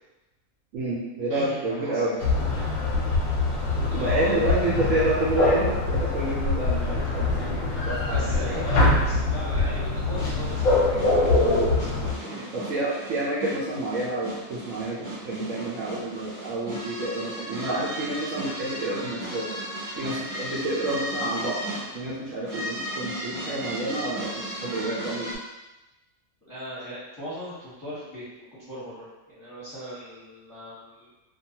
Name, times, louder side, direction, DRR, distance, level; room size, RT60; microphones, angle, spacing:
voice 1, 0.7-2.1 3.8-8.7 11.4-11.6 12.5-19.5 20.0-21.6 21.9-25.3, right 1 dB, 65° right, -7 dB, 0.9 m, -29 dB
voice 2, 1.3-2.2 4.0-4.5 7.0-7.2 7.8-12.5 26.4-31.2, equal, 15° left, -11 dB, 0.9 m, -39 dB
sound 1, 2.2-12.1, left 2 dB, 65° left, 0.9 m, -24 dB
sound 2, 10.1-25.4, equal, 25° right, 0.7 m, -36 dB
2.6 x 2.3 x 2.8 m, 1.0 s
omnidirectional pair, 1.6 m